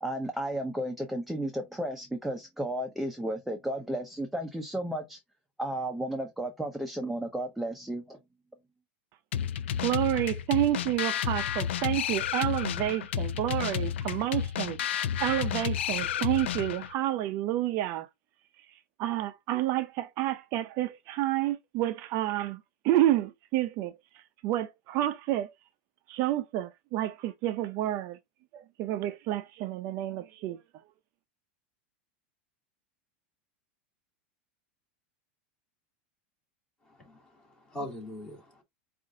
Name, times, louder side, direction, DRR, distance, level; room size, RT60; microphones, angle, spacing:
voice 1, 0.0-5.2 5.6-8.2, right 1 dB, ahead, 0.6 m, -33 dB
sound 1, 9.3-16.9, left 9 dB, 90° left, 0.4 m, -31 dB
voice 2, 9.8-18.1 19.0-25.5 26.1-28.2 28.5-30.6, right 14 dB, 45° right, 0.5 m, -29 dB
voice 3, 36.9-38.6, left 1 dB, 15° left, 2.2 m, -42 dB
5.1 x 2.5 x 3.7 m
supercardioid pair, 135°, 6 cm